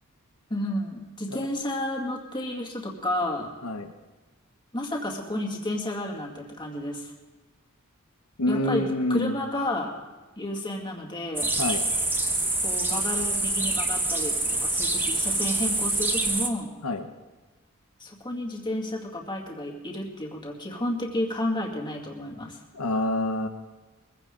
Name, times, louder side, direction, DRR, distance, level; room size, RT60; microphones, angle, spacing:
voice 1, 0.5-3.5 4.7-7.1 8.5-9.9 10.4-11.5 12.6-16.7 18.0-22.6, left 1 dB, 20° left, -1 dB, 2.2 m, -31 dB
voice 2, 3.6-3.9 8.4-9.4 11.6-11.8 16.8-17.1 22.7-23.5, left 1 dB, 85° left, 6 dB, 1.0 m, -27 dB
sound 1, 11.4-16.5, right 2 dB, 10° right, 1.0 m, -26 dB
22.5 x 15.5 x 3.8 m, 1.2 s
head